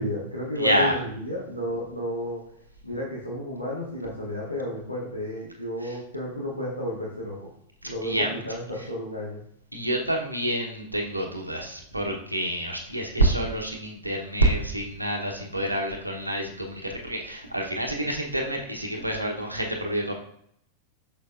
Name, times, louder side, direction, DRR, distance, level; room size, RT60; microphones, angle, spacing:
voice 1, 0.0-2.4 2.8-7.5 7.8-9.4, left 1 dB, 90° left, -6 dB, 1.5 m, -32 dB
voice 2, 0.6-1.0 5.8-6.0 8.0-8.3 9.7-20.1, right 1 dB, 85° right, 1 dB, 1.0 m, -27 dB
6.3 x 6.1 x 2.5 m, 0.69 s
figure-of-eight pair, 90°, 0 cm